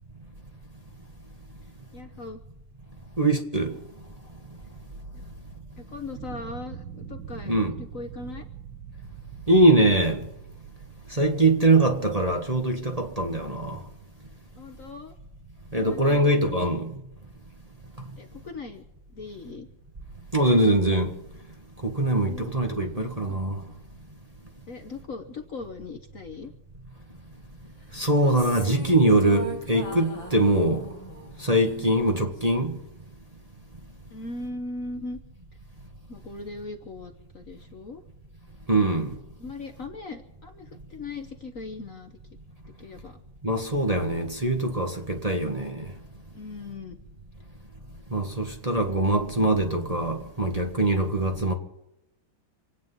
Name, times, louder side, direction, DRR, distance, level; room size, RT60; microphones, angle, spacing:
voice 1, 1.9-2.4 5.1-5.3 5.8-8.4 14.6-15.1 15.7-16.3 16.6-16.7 18.2-18.8 19.1-19.7 22.1-22.5 23.0-23.4 24.7-26.5 28.6-28.7 31.8-32.0 34.1-35.2 36.1-38.0 39.4-42.1 42.8-43.2 46.3-47.0, left 3 dB, 45° left, 1.3 m, -39 dB
voice 2, 3.2-3.7 7.5-7.7 9.5-10.3 11.1-13.8 15.7-16.9 20.3-21.1 21.8-23.6 27.9-30.8 31.4-32.8 38.7-39.1 43.4-45.8 48.1-51.5, right 1 dB, 20° right, 1.5 m, -22 dB
sound 1, 6.1-11.9, right 8 dB, 75° right, 2.2 m, -43 dB
sound 2, 28.2-32.6, right 2 dB, 15° left, 1.9 m, -40 dB
27.0 x 9.5 x 5.6 m
omnidirectional pair, 2.2 m